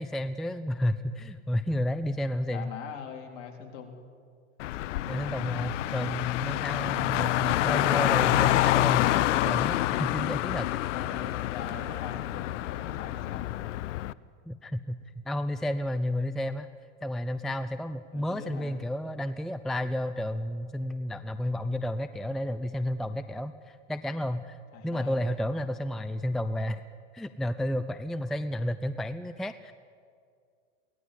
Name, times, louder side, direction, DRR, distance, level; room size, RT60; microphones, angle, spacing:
voice 1, 0.0-2.7 5.1-11.1 14.5-16.7 17.0-24.6 24.8-26.8 27.1-29.7, left 1 dB, ahead, 12 dB, 0.5 m, -32 dB
voice 2, 2.5-4.1 4.9-5.0 10.9-13.6 18.1-18.9 24.7-25.3, left 6 dB, 50° left, 3 dB, 3.9 m, -42 dB
Car, 4.6-14.1, left 15 dB, 70° left, 0.7 m, -27 dB
23.5 x 18.0 x 8.3 m, 2.2 s
hypercardioid pair, 105°, 38 cm